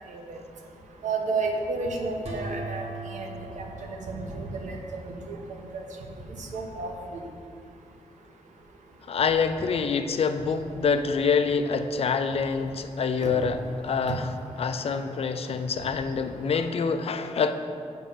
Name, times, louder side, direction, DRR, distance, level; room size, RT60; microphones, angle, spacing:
voice 1, 1.0-3.3 3.6-3.7 4.1-4.8 5.1-5.4 5.7-5.8 6.4-7.2 13.2-13.3 14.1-14.2, right 3 dB, 80° right, 2 dB, 0.9 m, -31 dB
sound 1, 2.2-5.0, right 2 dB, 60° right, 1.4 m, -39 dB
voice 2, 9.1-13.6 13.8-14.3 14.6-17.5, left 5 dB, 55° left, 9 dB, 0.4 m, -26 dB
7.2 x 3.7 x 5.5 m, 2.4 s
cardioid pair, 70°, 12 cm